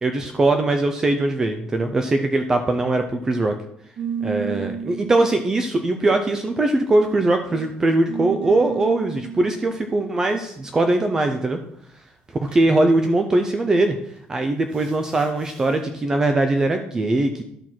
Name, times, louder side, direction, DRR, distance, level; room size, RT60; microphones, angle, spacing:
voice 1, 0.0-3.5 4.2-11.6 12.5-14.0 14.3-17.4, right 2 dB, 15° right, 6 dB, 0.5 m, -21 dB
sound 1, 4.0-6.8 7.5-9.6 12.5-12.7 13.9-14.2 14.7-15.7, right 6 dB, 45° right, 2.5 m, -34 dB
11.5 x 4.5 x 6.0 m, 0.71 s
cardioid pair, 175°, 3 cm